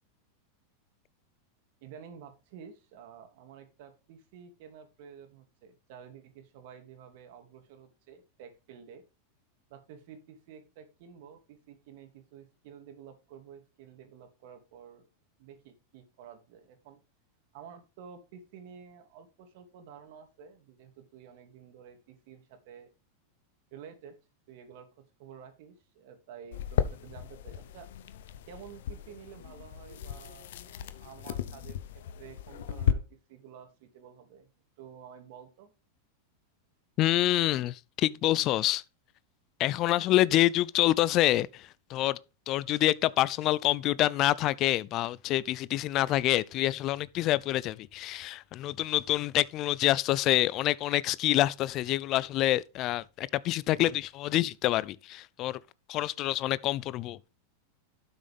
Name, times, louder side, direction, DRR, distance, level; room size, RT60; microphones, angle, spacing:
voice 1, 1.8-9.0 9.7-15.1 15.4-17.0 17.5-22.9 23.7-24.2 24.5-27.9 28.5-34.5 34.8-35.7, right 7 dB, 60° right, 2.5 m, -51 dB
sound 1, 26.5-32.9, left 10 dB, 75° left, 0.9 m, -35 dB
voice 2, 37.0-38.8 39.6-42.2 42.5-55.6 55.9-57.3, left 15 dB, 40° left, 0.4 m, -27 dB
12.0 x 6.4 x 3.5 m
hypercardioid pair, 120°, 0 cm